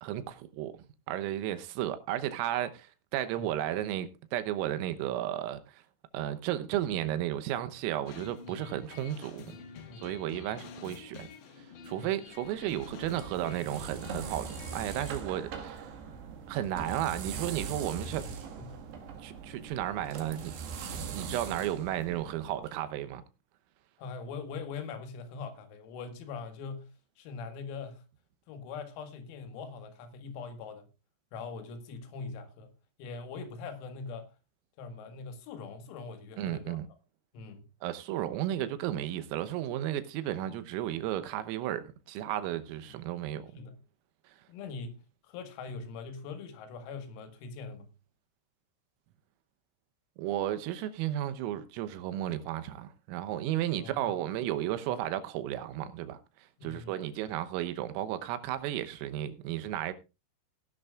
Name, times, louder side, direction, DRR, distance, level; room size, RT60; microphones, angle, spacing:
voice 1, 0.0-0.7 1.1-5.8 6.1-9.5 10.0-11.3 11.9-14.5 14.7-15.9 16.5-18.2 19.2-20.5 20.9-23.2 36.4-36.9 37.8-43.5 50.2-56.2 56.6-59.9, right 12 dB, 85° right, 3.6 m, -33 dB
sound 1, 8.1-15.2, left 6 dB, 65° left, 3.3 m, -48 dB
voice 2, 9.5-10.1 11.9-12.1 18.0-18.8 24.0-28.0 28.5-30.9 31.3-32.7 33.0-34.3 34.8-36.8 37.3-37.6 42.9-43.0 43.6-43.8 44.5-47.9 53.8-54.1 56.6-57.0, left 4 dB, 90° left, 4.5 m, -42 dB
sound 2, 12.4-22.7, right 6 dB, 60° right, 3.5 m, -41 dB
18.0 x 11.0 x 2.4 m
omnidirectional pair, 6.0 m